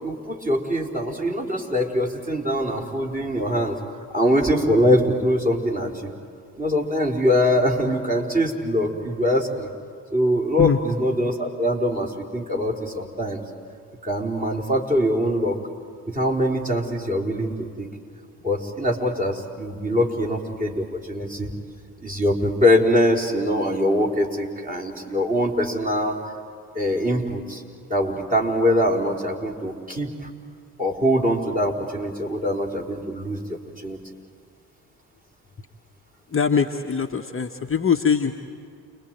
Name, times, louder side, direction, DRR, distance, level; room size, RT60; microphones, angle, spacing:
voice 1, 0.0-3.8 4.1-6.1 6.6-9.7 10.1-13.4 14.0-15.6 16.1-17.9 18.4-21.5 22.0-26.2 26.7-27.6 27.9-30.3 30.8-34.0, equal, 15° right, 2 dB, 4.6 m, -23 dB
voice 2, 36.3-38.3, left 6 dB, 25° left, 4 dB, 1.3 m, -22 dB
29.0 x 21.0 x 9.3 m, 2.2 s
figure-of-eight pair, 45°, 48 cm